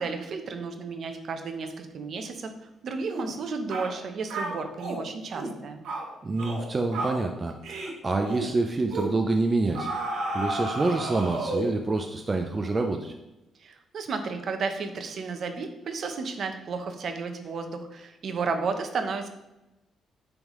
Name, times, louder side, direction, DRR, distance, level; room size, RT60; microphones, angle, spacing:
voice 1, 0.0-2.5 2.8-5.8 13.6-19.3, right 4 dB, 55° right, 6 dB, 0.8 m, -33 dB
sound 1, 3.1-3.3 3.7-3.9 4.3-5.0 5.3-5.6 5.8-6.1 6.4-6.7 6.9-7.2 7.6-7.9 8.2-8.5 8.9-9.1 9.7-11.8, right 2 dB, 85° right, 1.3 m, -32 dB
voice 2, 6.2-9.9 10.3-13.1, right 3 dB, 30° right, 4 dB, 0.5 m, -27 dB
8.9 x 3.5 x 3.1 m, 0.96 s
cardioid pair, 90°, 0 cm